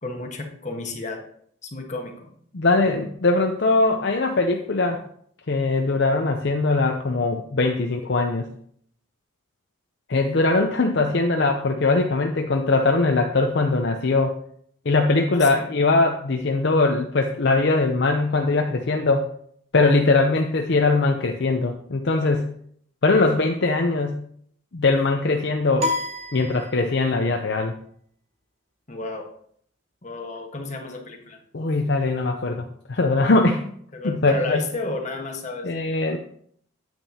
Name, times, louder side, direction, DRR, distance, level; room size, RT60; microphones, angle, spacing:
voice 1, 0.0-1.2 1.6-2.3 15.3-15.7 28.9-29.3 30.0-31.4 33.9-35.9, left 3 dB, 35° left, 2 dB, 1.4 m, -32 dB
voice 2, 2.5-5.0 5.5-8.5 10.1-14.4 14.8-19.3 19.7-22.5 23.0-24.2 24.7-25.9 26.3-27.7 31.5-33.6 34.0-34.6 35.6-36.2, left 3 dB, 60° left, 4 dB, 0.6 m, -21 dB
sound 1, 25.8-27.2, left 2 dB, 30° right, 1.0 m, -29 dB
8.9 x 8.7 x 2.8 m, 0.63 s
head